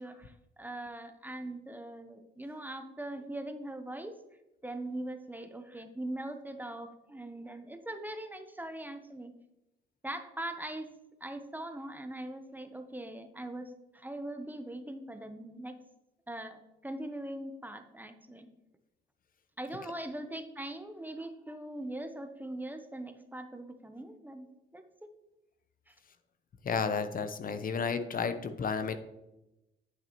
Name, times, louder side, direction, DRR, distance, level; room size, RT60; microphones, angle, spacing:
voice 1, 0.0-4.2 4.6-9.3 10.0-10.9 11.2-15.8 16.3-18.5 19.6-24.5 24.7-24.8 25.9-26.0, right 1 dB, 10° right, 8 dB, 0.8 m, -41 dB
voice 2, 26.6-28.9, left 5 dB, 45° left, 9 dB, 0.6 m, -32 dB
10.5 x 5.9 x 3.0 m, 0.95 s
cardioid pair, 90°, 20 cm